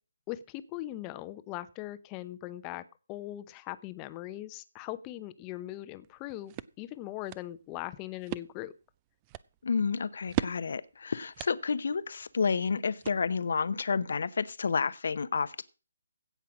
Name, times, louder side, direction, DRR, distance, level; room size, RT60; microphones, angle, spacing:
voice 1, 0.3-8.7, left 15 dB, 20° left, 14 dB, 0.8 m, -40 dB
sound 1, 6.0-13.7, right 15 dB, 25° right, 0.5 m, -41 dB
voice 2, 9.6-15.6, left 5 dB, 60° left, 16 dB, 0.8 m, -30 dB
16.5 x 5.7 x 6.0 m, 0.34 s
figure-of-eight pair, 155°, 0 cm